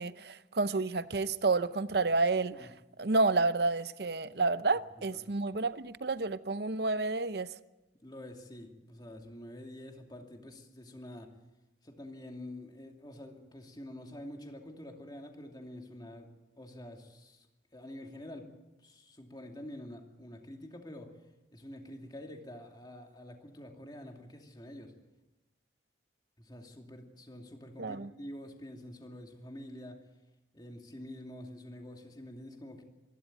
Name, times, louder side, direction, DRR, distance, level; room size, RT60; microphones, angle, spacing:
voice 1, 0.0-2.5 3.0-7.5 27.8-28.1, right 3 dB, 55° right, 0.7 m, -30 dB
voice 2, 8.0-11.3 11.8-16.3 16.6-17.5 17.7-18.5 18.8-21.1 21.5-24.9 26.4-30.0 30.5-32.8, left 1 dB, 20° left, 2.5 m, -47 dB
25.5 x 12.5 x 9.1 m
head